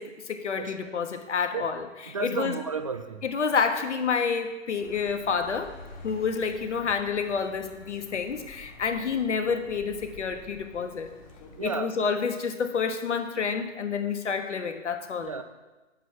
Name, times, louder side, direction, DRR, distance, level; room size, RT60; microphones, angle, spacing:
voice 1, 0.0-2.6 3.2-5.7 6.0-11.1 11.6-15.3, left 5 dB, 70° left, 7 dB, 1.5 m, -29 dB
voice 2, 0.6-0.9 1.5-1.7 2.1-3.3 11.6-11.9 15.2-15.4, right 5 dB, 30° right, 9 dB, 0.4 m, -33 dB
Accelerating revving vroom, 4.8-11.7, left 2 dB, 35° left, 2.0 m, -49 dB
10.5 x 8.4 x 5.8 m, 1.1 s
figure-of-eight pair, 135°, 37 cm